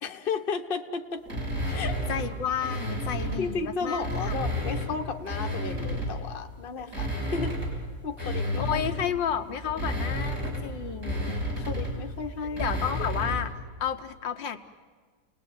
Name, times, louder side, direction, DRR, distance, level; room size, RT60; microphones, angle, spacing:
voice 1, 0.0-1.2 1.7-2.0 3.4-7.6 8.0-8.8 11.5-12.7 13.0-13.1, left 5 dB, 35° left, 5 dB, 1.2 m, -33 dB
sound 1, 1.3-3.5 3.9-6.3 6.8-13.5, equal, 50° right, 6.0 m, -32 dB
voice 2, 2.1-4.4 8.2-11.4 12.6-14.6, left 8 dB, 70° left, 7 dB, 1.6 m, -32 dB
29.5 x 19.5 x 9.3 m, 1.5 s
omnidirectional pair, 2.1 m